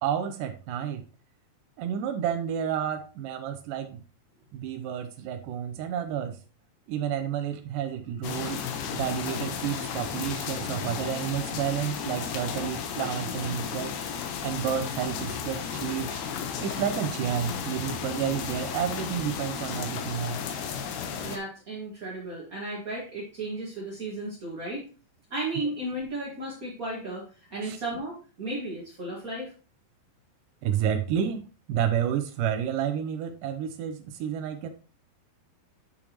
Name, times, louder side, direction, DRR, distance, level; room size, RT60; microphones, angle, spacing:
voice 1, 0.0-1.0 1.8-4.0 4.5-6.4 6.9-8.6 8.9-13.9 14.4-16.2 16.6-20.4 27.6-27.8 30.6-31.4 31.7-34.7, right 9 dB, 80° right, 6 dB, 1.9 m, -30 dB
sound 1, 8.2-21.4, left 7 dB, 90° left, 3.0 m, -34 dB
voice 2, 21.2-24.9 25.3-29.5, right 2 dB, 40° right, -5 dB, 1.2 m, -34 dB
8.5 x 7.1 x 3.0 m, 0.34 s
omnidirectional pair, 4.6 m